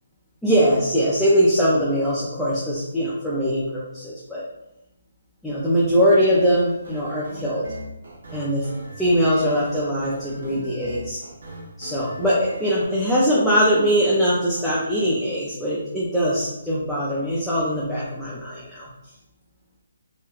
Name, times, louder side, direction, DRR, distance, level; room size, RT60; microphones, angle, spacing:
voice 1, 0.4-4.4 5.4-7.8 8.3-8.7 9.0-11.2 11.8-18.9, equal, ahead, -9 dB, 0.4 m, -21 dB
sound 1, 6.2-12.9, right 2 dB, 70° right, 0.7 m, -40 dB
2.9 x 2.2 x 2.4 m, 0.88 s
hypercardioid pair, 165°, 0 cm